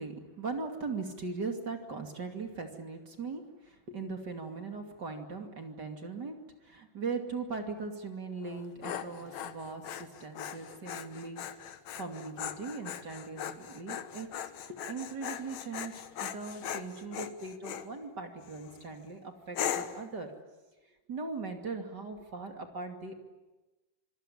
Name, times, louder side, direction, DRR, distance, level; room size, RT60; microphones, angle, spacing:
voice 1, 0.0-6.3 6.6-11.4 11.9-20.3 21.1-23.2, right 4 dB, 30° right, 4 dB, 2.5 m, -39 dB
Dog, 8.4-17.9 18.4-18.8 19.5-20.1, left 9 dB, 65° left, 1.9 m, -39 dB
26.0 x 22.5 x 9.9 m, 1.1 s
omnidirectional pair, 4.6 m